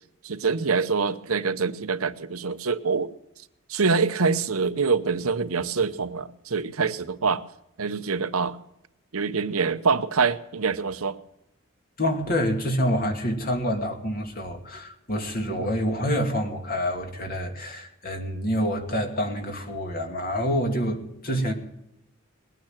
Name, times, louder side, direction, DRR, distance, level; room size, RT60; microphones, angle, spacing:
voice 1, 0.2-3.1 3.7-7.4 7.8-8.6 9.1-11.2 15.5-15.7, right 5 dB, 85° right, 12 dB, 0.9 m, -25 dB
voice 2, 12.0-21.5, equal, 45° left, 4 dB, 2.6 m, -27 dB
20.5 x 9.2 x 7.3 m, 0.82 s
head